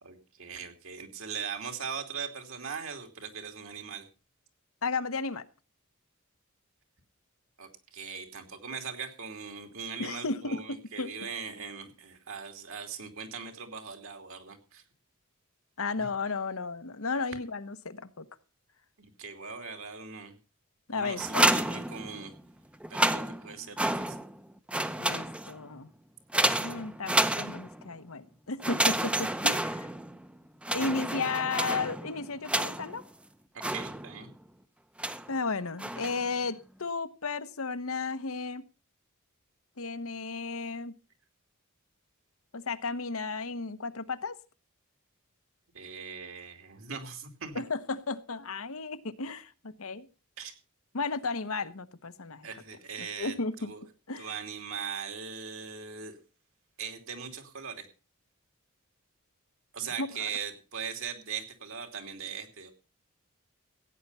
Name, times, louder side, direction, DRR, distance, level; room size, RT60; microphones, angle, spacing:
voice 1, 0.0-4.0 7.6-14.8 16.0-16.1 19.0-20.4 20.9-22.3 22.9-24.2 33.7-34.3 45.7-47.6 50.4-50.5 52.4-53.8 54.2-56.2 56.8-57.9 59.7-62.7, right 6 dB, 65° right, 6 dB, 2.9 m, -40 dB
voice 2, 4.8-5.4 10.0-11.1 15.8-18.3 20.9-21.5 25.0-25.9 26.6-29.9 30.7-33.0 35.3-38.6 39.8-41.0 42.5-44.4 47.5-50.1 50.9-52.5 53.0-53.7 54.1-54.3 59.8-60.4, left 4 dB, 70° left, 12 dB, 1.0 m, -34 dB
sound 1, 21.2-22.4 22.8-24.4 24.7-25.7 26.3-27.9 28.6-30.3 30.6-33.0 33.6-34.3 35.0-35.4 35.8-36.3, right 1 dB, 5° right, 0.7 m, -30 dB
16.0 x 9.4 x 5.5 m, 0.34 s
head